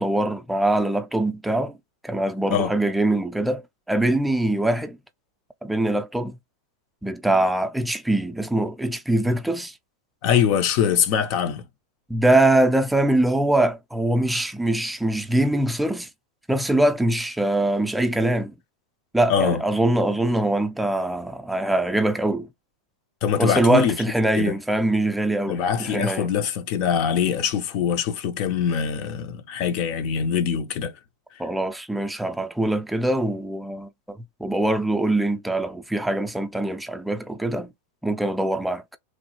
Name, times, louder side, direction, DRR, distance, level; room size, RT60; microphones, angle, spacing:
voice 1, 0.0-1.8 2.0-5.0 5.6-6.4 7.0-9.7 12.1-16.1 16.5-18.5 19.1-22.5 23.4-26.3 31.4-37.7 38.0-38.8, right 1 dB, 5° right, 0.4 m, -23 dB
voice 2, 10.2-11.7 19.3-19.6 23.2-24.0 24.4-24.6 25.5-30.9, left 8 dB, 50° left, 0.5 m, -23 dB
3.1 x 2.2 x 2.9 m
hypercardioid pair, 125°, 0 cm